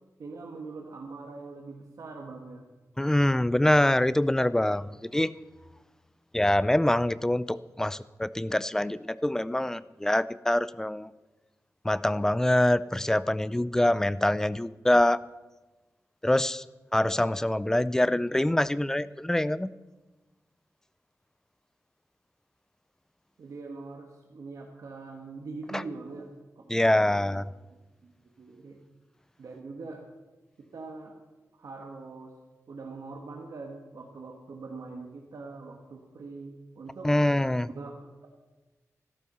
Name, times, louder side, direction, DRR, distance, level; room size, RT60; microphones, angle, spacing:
voice 1, 0.2-2.6 23.4-26.3 26.5-28.8 29.4-30.0 30.6-31.2 31.5-32.3 32.7-37.1 37.7-37.9 38.2-38.3, right 3 dB, 70° right, 1 dB, 1.5 m, -43 dB
voice 2, 3.0-5.3 6.3-11.1 11.8-15.2 16.2-16.6 16.9-19.7 25.7-25.8 26.7-27.5 37.0-37.7, left 1 dB, 10° left, 17 dB, 0.3 m, -25 dB
14.0 x 12.5 x 5.6 m, 1.2 s
wide cardioid pair, 130°, 6 cm